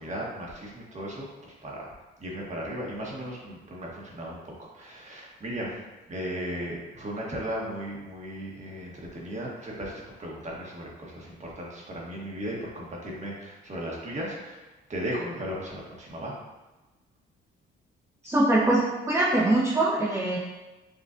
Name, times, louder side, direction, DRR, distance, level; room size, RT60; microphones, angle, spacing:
voice 1, 0.0-1.9 2.2-4.4 4.7-5.7 6.1-14.6 14.9-16.3, equal, 35° right, -3 dB, 1.1 m, -36 dB
voice 2, 18.2-20.4, right 2 dB, 15° right, -6 dB, 0.8 m, -23 dB
6.3 x 2.4 x 2.5 m, 1.1 s
cardioid pair, 90°, 20 cm